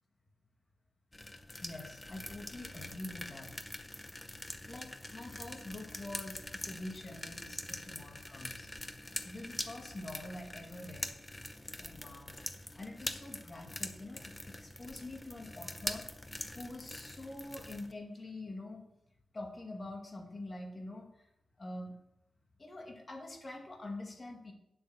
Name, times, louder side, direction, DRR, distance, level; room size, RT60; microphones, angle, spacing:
sound 1, 1.1-17.9, left 1 dB, 15° left, 0.7 m, -44 dB
voice 1, 1.6-3.9 4.6-8.7 9.2-11.1 11.8-12.3 12.8-16.0 16.6-18.9 19.3-21.1 21.6-21.9 22.6-24.5, left 2 dB, 30° left, 1 dB, 2.1 m, -45 dB
9.4 x 7.7 x 6.2 m, 0.81 s
wide cardioid pair, 155°, 0 cm